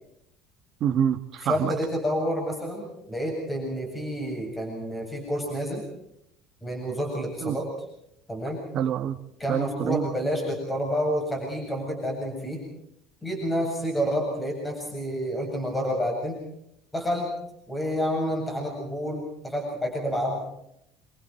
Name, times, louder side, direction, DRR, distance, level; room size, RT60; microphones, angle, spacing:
voice 1, 0.8-1.7 7.4-7.6 8.7-9.2 9.5-10.0, right 9 dB, 40° right, 4 dB, 1.5 m, -26 dB
voice 2, 1.4-5.9 6.6-7.7 8.3-8.6 9.4-12.6 13.2-16.4 16.9-17.3 17.7-20.4, equal, 10° left, 1 dB, 8.0 m, -29 dB
26.5 x 26.5 x 4.5 m, 0.77 s
cardioid pair, 150°, 0 cm